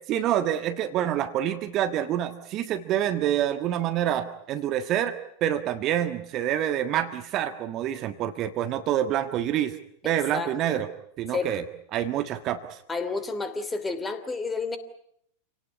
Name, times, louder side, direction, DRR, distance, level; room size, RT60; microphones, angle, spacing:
voice 1, 0.1-9.8 10.0-10.9 11.2-11.6 11.9-12.8, right 11 dB, 35° right, 10 dB, 1.6 m, -27 dB
voice 2, 10.0-10.9 11.3-11.6 12.9-14.8, left 4 dB, 15° left, 11 dB, 2.8 m, -31 dB
28.0 x 18.5 x 9.6 m, 0.73 s
figure-of-eight pair, 90°, 0 cm